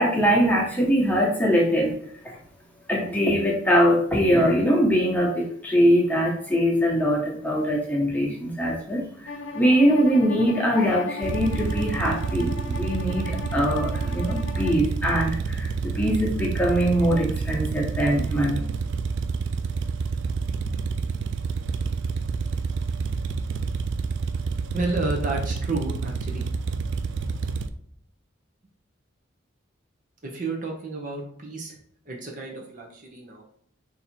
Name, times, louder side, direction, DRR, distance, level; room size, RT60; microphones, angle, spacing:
voice 1, 0.0-1.9 2.2-2.3 2.9-18.6, equal, 10° left, -3 dB, 1.1 m, -22 dB
Bowed string instrument, 9.3-14.9, left 3 dB, 70° left, 0.6 m, -37 dB
sound 1, 11.2-27.7, right 4 dB, 65° right, 0.4 m, -28 dB
voice 2, 24.7-26.5 30.2-31.8 32.1-33.4, right 3 dB, 40° right, 0 dB, 0.8 m, -31 dB
4.0 x 2.8 x 4.4 m, 0.63 s
head